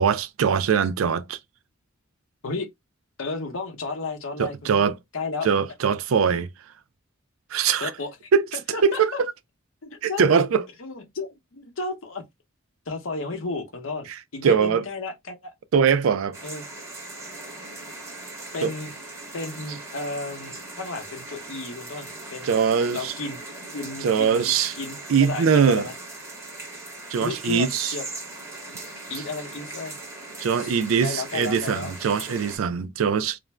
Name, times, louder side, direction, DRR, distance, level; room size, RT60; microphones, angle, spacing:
voice 1, 0.0-1.4 4.4-5.0 5.4-6.5 7.5-7.9 8.3-8.4 8.8-9.1 10.0-10.6 14.4-14.8 15.7-16.4 18.6-18.7 22.4-23.1 24.0-24.7 25.1-25.9 27.1-27.9 30.4-33.4, right 6 dB, 80° right, 0.4 m, -21 dB
voice 2, 3.2-4.9 5.1-5.5 7.8-8.3 8.7-9.2 9.8-10.2 10.8-12.2 12.9-14.1 14.3-15.5 16.4-16.6 18.5-18.9 19.3-22.6 22.9-23.4 23.7-25.9 27.2-28.1 29.1-30.0 30.5-31.9, left 3 dB, 75° left, 0.8 m, -33 dB
sound 1, 16.3-32.6, right 2 dB, 15° right, 1.0 m, -39 dB
2.5 x 2.1 x 3.1 m
head